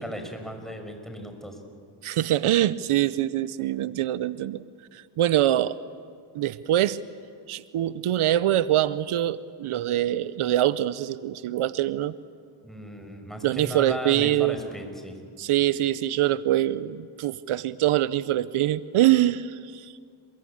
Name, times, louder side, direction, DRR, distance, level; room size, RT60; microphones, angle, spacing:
voice 1, 0.0-1.6 12.6-15.2, equal, ahead, 4 dB, 6.1 m, -36 dB
voice 2, 2.0-4.6 4.9-5.8 6.3-7.0 7.5-12.1 13.4-14.6 15.4-19.9, right 13 dB, 90° right, 17 dB, 0.7 m, -24 dB
29.0 x 22.5 x 8.6 m, 2.2 s
cardioid pair, 50°, 49 cm